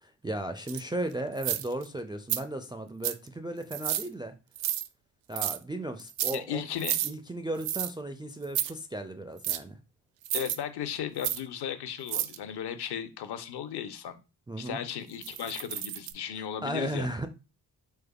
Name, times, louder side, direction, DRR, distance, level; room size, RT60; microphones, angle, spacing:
voice 1, 0.0-4.3 5.3-6.6 7.0-9.8 14.5-14.8 16.6-17.3, right 1 dB, 10° right, 0.4 m, -35 dB
sound 1, 0.7-0.8 1.4-1.8 2.3-2.4 3.0-3.3 3.7-4.1 4.6-4.9 5.3-5.6 6.0-6.4 6.8-7.1 7.6-7.9 8.4-8.7 9.4-9.6 10.2-10.6 11.2-11.4 12.1-12.4 15.2-16.1, right 12 dB, 65° right, 0.5 m, -31 dB
voice 2, 6.3-7.0 10.3-14.2 14.6-17.1, left 9 dB, 55° left, 0.7 m, -36 dB
3.5 x 3.1 x 2.3 m
hypercardioid pair, 45°, 49 cm